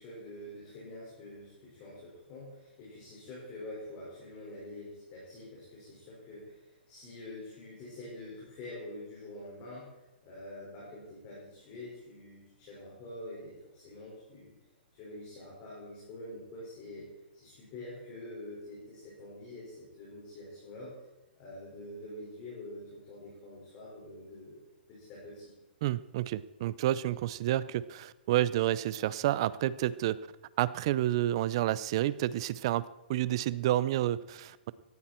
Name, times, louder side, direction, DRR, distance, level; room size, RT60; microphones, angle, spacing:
voice 1, 0.0-14.5 14.9-21.0 21.4-24.6 24.9-25.5, left 1 dB, 25° left, -6 dB, 5.2 m, -46 dB
voice 2, 25.8-30.2 30.6-34.7, right 13 dB, 30° right, 18 dB, 0.4 m, -30 dB
18.0 x 14.0 x 4.4 m, 1.0 s
hypercardioid pair, 175°, 6 cm